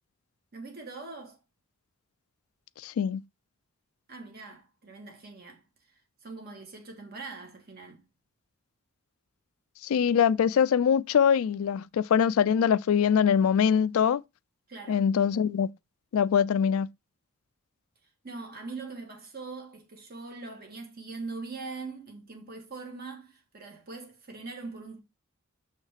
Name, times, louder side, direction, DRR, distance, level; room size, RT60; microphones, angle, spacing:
voice 1, 0.5-1.4 4.1-8.0 14.7-15.0 18.2-25.0, right 3 dB, 45° right, 1.4 m, -42 dB
voice 2, 2.8-3.2 9.8-14.2 14.9-15.7 16.1-16.9, left 7 dB, 75° left, 0.3 m, -23 dB
6.4 x 3.2 x 4.8 m
head